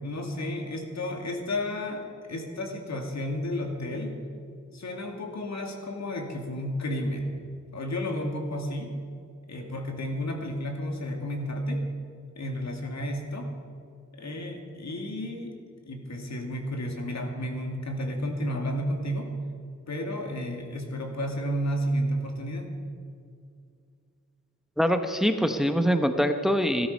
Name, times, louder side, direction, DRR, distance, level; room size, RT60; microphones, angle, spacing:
voice 1, 0.0-4.1 4.7-7.3 7.7-8.9 9.5-11.8 12.4-13.5 14.1-15.6 15.9-19.3 19.9-22.7, equal, 65° left, 3 dB, 2.4 m, -32 dB
voice 2, 24.8-26.9, equal, ahead, 7 dB, 1.0 m, -24 dB
17.5 x 12.5 x 5.4 m, 2.3 s
cardioid pair, 70°, 29 cm